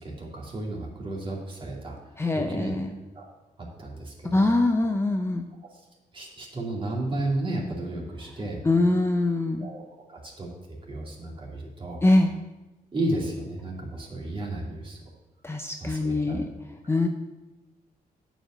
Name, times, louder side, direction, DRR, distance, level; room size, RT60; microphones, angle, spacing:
voice 1, 0.0-2.0 2.3-2.8 3.1-3.3 3.8-4.5 5.7-5.8 6.1-8.6 9.6-9.8 10.1-12.0 12.9-15.0 15.8-16.4, right 2 dB, 35° right, -2 dB, 2.7 m, -33 dB
voice 2, 2.2-2.9 4.2-5.4 8.6-9.7 12.0-12.3 15.4-16.5 16.9-17.1, left 2 dB, 15° left, 4 dB, 0.6 m, -23 dB
9.0 x 5.1 x 7.5 m, 1.1 s
cardioid pair, 105°, 16 cm